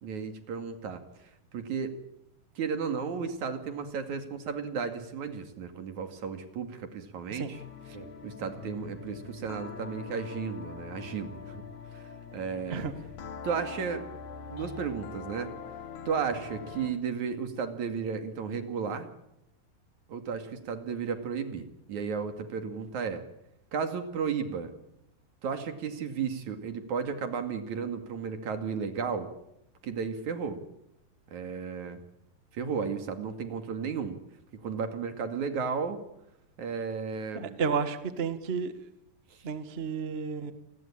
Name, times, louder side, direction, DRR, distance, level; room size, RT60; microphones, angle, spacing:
voice 1, 0.0-1.9 2.6-7.6 7.9-11.6 11.9-12.0 12.3-12.8 13.4-14.0 14.5-15.5 16.1-19.1 20.1-23.3 23.7-24.7 25.4-29.3 29.8-30.6 31.3-32.0 32.5-34.2 34.5-36.0 36.6-37.6, right 6 dB, 55° right, 3.5 m, -34 dB
sound 1, 7.5-17.0, left 5 dB, 60° left, 2.8 m, -43 dB
voice 2, 37.3-38.7 39.4-40.5, right 5 dB, 70° right, 0.5 m, -31 dB
29.5 x 20.5 x 8.8 m
omnidirectional pair, 4.3 m